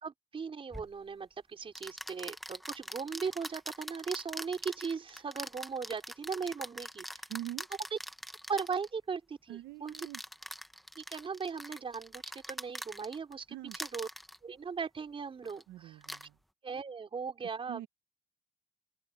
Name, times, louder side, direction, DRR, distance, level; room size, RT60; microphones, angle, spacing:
voice 1, 0.0-7.2 8.5-9.9 11.0-13.4 13.8-14.1 14.4-16.0 16.6-17.9, right 5 dB, 30° right, 5.0 m, -38 dB
sound 1, 0.7-0.9 1.8-8.9 9.9-13.3 13.7-14.4 15.4-15.6 16.0-16.3, equal, ahead, 1.1 m, -43 dB
voice 2, 7.3-7.7 9.5-10.2 13.5-13.8 15.7-16.3 17.7-17.9, right 14 dB, 80° right, 1.2 m, -43 dB
open air
cardioid pair, 110°, 17 cm